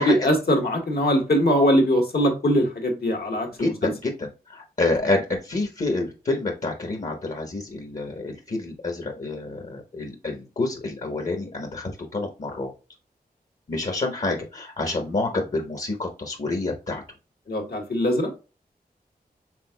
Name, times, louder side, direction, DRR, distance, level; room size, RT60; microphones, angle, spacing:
voice 1, 0.0-3.9 17.5-18.3, equal, 75° left, 3 dB, 1.6 m, -21 dB
voice 2, 3.6-12.7 13.7-17.0, left 2 dB, 50° left, 3 dB, 1.0 m, -28 dB
6.0 x 3.6 x 2.2 m, 0.33 s
wide cardioid pair, 70°, 16 cm